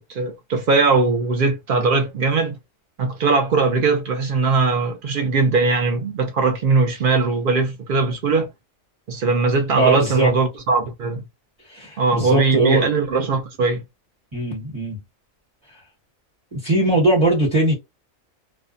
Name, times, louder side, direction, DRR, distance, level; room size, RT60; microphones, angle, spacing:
voice 1, 0.1-2.5 3.0-8.5 9.1-11.2 12.0-13.8, right 4 dB, 65° right, 0.5 m, -20 dB
voice 2, 9.8-10.3 11.7-12.9 14.3-15.0 16.5-17.8, right 2 dB, 25° right, 1.1 m, -19 dB
2.6 x 2.1 x 2.4 m
omnidirectional pair, 1.4 m